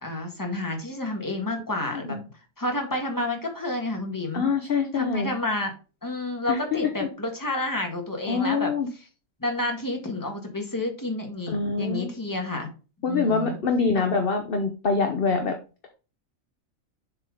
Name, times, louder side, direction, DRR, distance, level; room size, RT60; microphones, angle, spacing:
voice 1, 0.0-2.2 2.6-4.5 4.9-5.7 6.0-9.0 9.4-12.7 13.1-13.6 13.9-14.0, left 2 dB, 15° left, 3 dB, 1.6 m, -30 dB
voice 2, 4.3-5.3 6.5-6.9 8.3-8.9 11.5-12.1 13.0-15.6, left 4 dB, 45° left, 4 dB, 1.1 m, -25 dB
7.2 x 5.0 x 3.8 m, 0.33 s
omnidirectional pair, 1.4 m